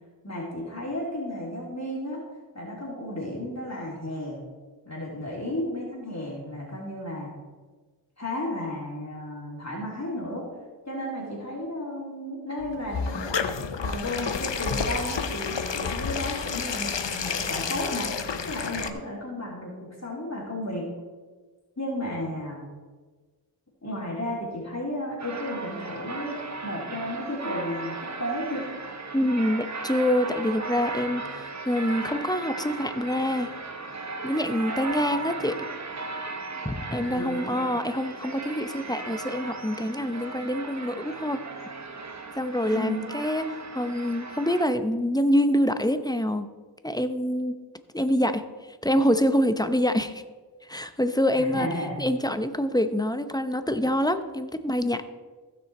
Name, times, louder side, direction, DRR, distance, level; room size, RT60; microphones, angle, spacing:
voice 1, 0.2-2.2 2.5-4.4 4.8-7.3 8.2-10.5 10.8-13.4 13.8-18.1 18.5-20.9 21.8-22.6 23.8-26.4 26.6-28.7 37.0-37.6 42.7-43.1 51.4-52.0, left 1 dB, 40° left, -5 dB, 3.2 m, -33 dB
sound 1, 12.6-18.9, left 6 dB, 80° left, 0.8 m, -30 dB
sound 2, 25.2-44.7, right 3 dB, 40° right, 1.0 m, -36 dB
voice 2, 29.1-33.5 34.2-35.6 36.6-41.4 42.4-46.5 46.8-47.6 47.9-48.4 48.7-50.2 50.6-51.7 52.0-55.0, equal, 10° left, 10 dB, 0.7 m, -26 dB
15.5 x 6.3 x 4.2 m, 1.4 s
wide cardioid pair, 40°, 43 cm